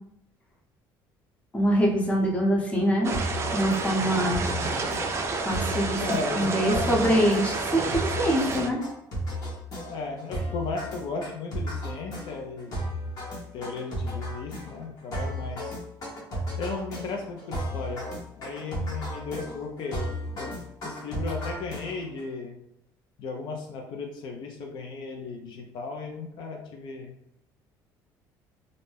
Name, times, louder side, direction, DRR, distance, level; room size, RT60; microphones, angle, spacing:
voice 1, 1.5-3.1 3.5-4.4 5.4-6.0 6.3-8.8, equal, 15° left, -2 dB, 0.7 m, -24 dB
sound 1, 3.0-8.7, right 3 dB, 35° right, 0.3 m, -30 dB
sound 2, 3.1-22.2, equal, 45° left, 1.0 m, -34 dB
voice 2, 6.0-7.1 9.9-13.1 13.5-15.8 16.6-18.1 18.4-20.5 20.8-22.6 23.2-27.1, left 4 dB, 65° left, 1 dB, 0.5 m, -35 dB
2.6 x 2.1 x 3.3 m, 0.79 s
cardioid pair, 120°, 9 cm